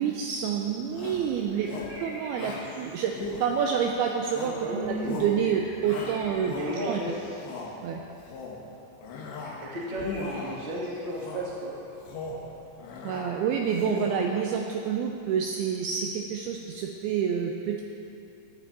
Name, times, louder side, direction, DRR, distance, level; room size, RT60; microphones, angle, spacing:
voice 1, 0.0-1.7 2.0-3.1 3.4-4.5 4.9-6.5 6.9-7.0 7.8-8.0 13.0-17.8, right 7 dB, 90° right, 2 dB, 2.2 m, -28 dB
sound 1, 0.8-13.9, right 1 dB, 65° right, 5.2 m, -50 dB
Shout, 0.9-1.3 1.6-2.0 2.3-2.7 3.1-3.8 4.3-4.7 5.0-5.4 5.8-6.9 7.3-7.7 8.2-8.6 9.0-9.6 9.9-10.6 11.1-11.5 11.9-12.5 12.8-13.3 13.7-14.4, left 4 dB, 75° left, 3.4 m, -38 dB
voice 2, 4.6-5.2 6.5-7.1 9.6-11.7, equal, 45° right, -6 dB, 0.7 m, -33 dB
15.5 x 11.0 x 4.2 m, 2.7 s
omnidirectional pair, 5.2 m